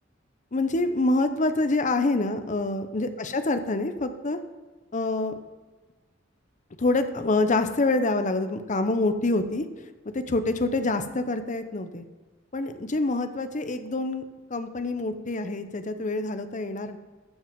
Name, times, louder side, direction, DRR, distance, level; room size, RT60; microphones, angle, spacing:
voice 1, 0.5-4.4 4.9-5.3 6.8-9.6 10.1-12.1 12.5-14.2 14.5-17.0, left 2 dB, 40° left, 9 dB, 0.7 m, -26 dB
14.0 x 5.9 x 5.2 m, 1.2 s
head